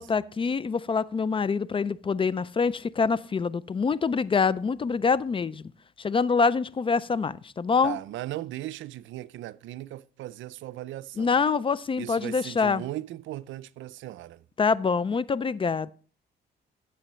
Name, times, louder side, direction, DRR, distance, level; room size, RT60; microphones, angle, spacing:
voice 1, 0.0-5.7 6.0-8.0 11.2-12.8 14.6-15.9, left 5 dB, 25° left, 0.4 m, -25 dB
voice 2, 7.8-11.4 12.0-14.4, right 15 dB, 75° right, 0.5 m, -37 dB
14.5 x 6.8 x 3.1 m
cardioid pair, 90°, 20 cm